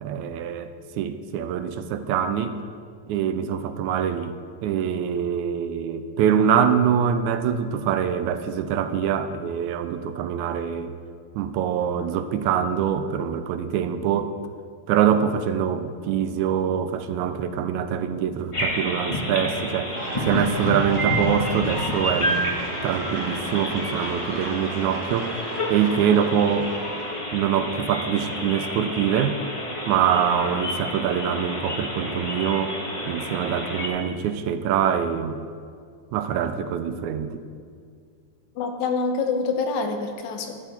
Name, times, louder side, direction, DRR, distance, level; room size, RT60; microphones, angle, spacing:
voice 1, 0.0-2.6 3.1-4.4 4.6-10.9 11.4-14.3 14.9-19.9 20.2-25.4 25.7-26.8 27.3-29.4 29.9-32.8 33.1-35.4 36.1-37.4, right 8 dB, 85° right, 10 dB, 2.0 m, -24 dB
sound 1, 18.5-33.9, equal, 45° left, 0.4 m, -29 dB
sound 2, 20.0-27.2, right 2 dB, 50° right, 3.0 m, -36 dB
voice 2, 38.6-40.6, left 4 dB, 80° left, 5 dB, 2.3 m, -26 dB
12.5 x 9.0 x 4.3 m, 2.2 s
omnidirectional pair, 3.4 m